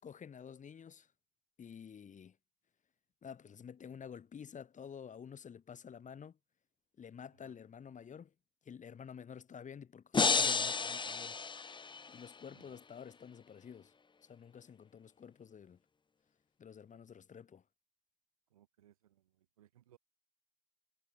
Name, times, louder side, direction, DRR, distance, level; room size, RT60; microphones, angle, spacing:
voice 1, 0.0-1.1 1.6-2.4 3.2-6.4 7.0-8.3 8.6-11.4 12.1-13.9 14.2-15.8 16.6-17.6, left 7 dB, 45° left, 6.2 m, -50 dB
sound 1, 10.1-12.3, left 5 dB, 25° left, 1.1 m, -32 dB
voice 2, 18.5-20.0, right 12 dB, 80° right, 4.3 m, -66 dB
figure-of-eight pair, 45°, 18 cm